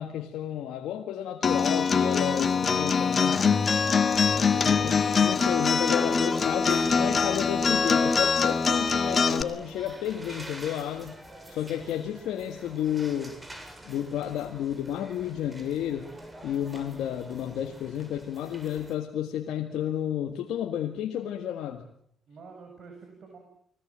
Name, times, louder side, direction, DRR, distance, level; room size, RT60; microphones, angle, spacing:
voice 1, 0.0-3.4 4.6-11.2 11.5-13.4 13.8-16.1 16.4-21.9, left 10 dB, 80° left, 4 dB, 1.7 m, -31 dB
Acoustic guitar, 1.4-9.4, left 5 dB, 45° left, 2.0 m, -23 dB
sound 1, 3.2-19.0, right 1 dB, 20° right, 7.0 m, -47 dB
voice 2, 4.2-5.0 22.3-23.4, right 4 dB, 60° right, 2 dB, 7.5 m, -47 dB
29.5 x 21.0 x 7.5 m, 0.72 s
supercardioid pair, 60°, 0 cm